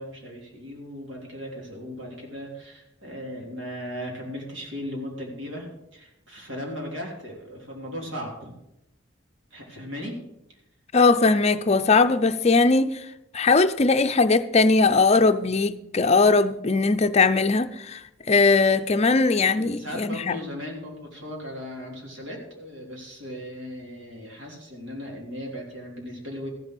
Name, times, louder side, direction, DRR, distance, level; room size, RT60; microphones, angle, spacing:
voice 1, 0.0-8.5 9.5-10.2 10.5-10.6 19.6-26.5, equal, 75° right, 3.5 m, -37 dB
voice 2, 10.9-12.9 13.3-18.0 18.3-20.4, left 3 dB, 35° left, 0.6 m, -20 dB
14.5 x 7.0 x 6.2 m
head